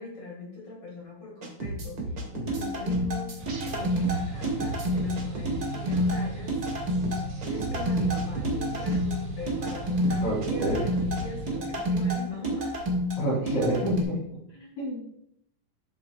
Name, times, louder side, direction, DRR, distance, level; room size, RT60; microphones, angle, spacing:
voice 1, 0.0-3.4 3.6-6.7 7.4-12.9 14.5-14.7, left 3 dB, 45° left, -2 dB, 2.4 m, -41 dB
sound 1, 1.4-2.6 2.9-3.8 4.0-5.5 5.9-6.1 6.7-6.8 7.0-8.6 8.9-9.1 9.7-9.8 10.0-11.2, right 2 dB, 60° right, 1.2 m, -35 dB
sound 2, 2.5-14.0, equal, 45° right, 1.2 m, -29 dB
sound 3, 3.4-11.6, right 4 dB, 85° right, 4.4 m, -38 dB
voice 2, 10.2-10.8 13.2-14.2 14.8-15.0, right 1 dB, 65° left, -9 dB, 5.2 m, -28 dB
12.0 x 7.7 x 2.4 m, 0.73 s
omnidirectional pair, 4.7 m